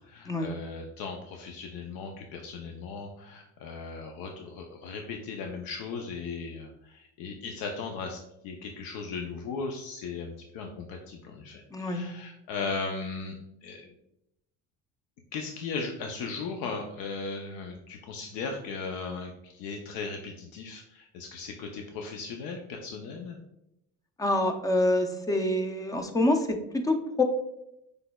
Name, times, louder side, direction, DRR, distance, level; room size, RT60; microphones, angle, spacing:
voice 1, 0.0-13.9 15.3-23.4, left 4 dB, 75° left, 3 dB, 0.6 m, -37 dB
voice 2, 11.7-12.0 24.2-27.2, left 1 dB, 10° left, 5 dB, 0.4 m, -26 dB
6.0 x 3.4 x 2.2 m, 0.84 s
cardioid pair, 125°, 36 cm